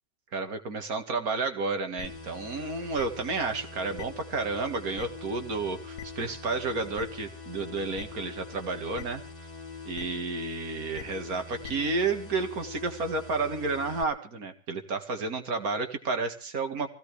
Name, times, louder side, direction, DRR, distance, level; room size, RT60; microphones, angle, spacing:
voice 1, 0.3-9.2 9.9-16.9, right 3 dB, 60° right, 6 dB, 2.4 m, -31 dB
sound 1, 2.0-2.1 3.0-3.1 4.0-4.1 5.0-5.1 6.0-6.1 7.0-7.1 8.0-8.1 9.0-9.1 9.9-10.0 10.9-11.0 11.6-11.7, left 10 dB, 75° left, 1.5 m, -40 dB
sound 2, 2.0-14.0, left 4 dB, 25° left, 3.0 m, -43 dB
23.5 x 16.0 x 3.3 m, 0.37 s
omnidirectional pair, 1.7 m